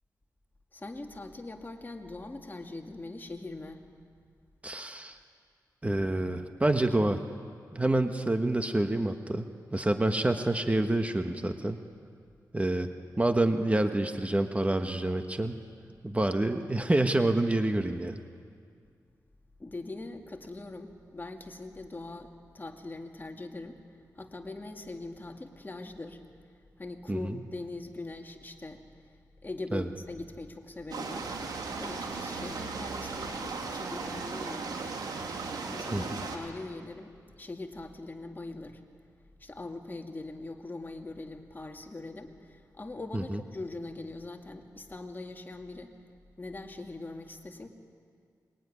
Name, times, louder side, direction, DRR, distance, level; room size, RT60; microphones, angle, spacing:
voice 1, 0.7-3.8 19.6-26.2 26.8-29.1 29.4-31.4 31.8-34.8 35.7-38.8 39.4-46.0 46.4-47.7, left 2 dB, 30° left, 4 dB, 2.4 m, -42 dB
voice 2, 4.6-5.2 5.8-7.2 7.7-11.8 12.5-12.9 13.2-15.5 16.0-18.2 27.1-27.3 29.7-29.8 35.9-36.2 43.1-43.4, right 1 dB, 20° right, 6 dB, 1.4 m, -27 dB
sound 1, 30.9-36.4, right 4 dB, 80° right, 3.5 m, -36 dB
24.0 x 22.5 x 9.9 m, 2.2 s
cardioid pair, 75°, 7 cm